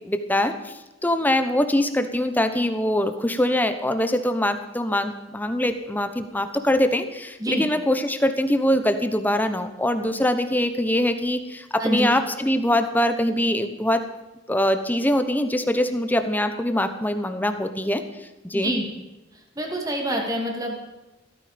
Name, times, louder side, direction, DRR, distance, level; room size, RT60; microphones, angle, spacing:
voice 1, 0.0-0.7 1.0-14.0 14.5-18.0 18.4-18.7, left 1 dB, 10° left, 8 dB, 1.0 m, -23 dB
voice 2, 18.5-18.8 19.6-20.7, right 1 dB, 20° right, 1 dB, 2.7 m, -25 dB
15.5 x 14.0 x 5.2 m, 1.0 s
head